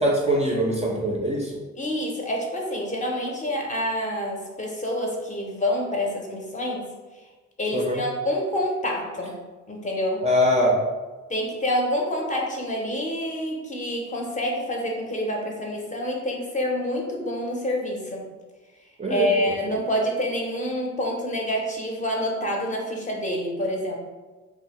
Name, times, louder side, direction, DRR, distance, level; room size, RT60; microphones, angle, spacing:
voice 1, 0.0-1.6 7.7-8.0 10.2-10.7 19.0-19.3, equal, 25° right, -2 dB, 0.3 m, -22 dB
voice 2, 1.8-6.9 7.6-9.4 9.7-10.2 11.3-18.3 19.1-24.0, left 1 dB, 25° left, -1 dB, 0.5 m, -27 dB
2.6 x 2.1 x 2.9 m, 1.2 s
cardioid pair, 90°, 30 cm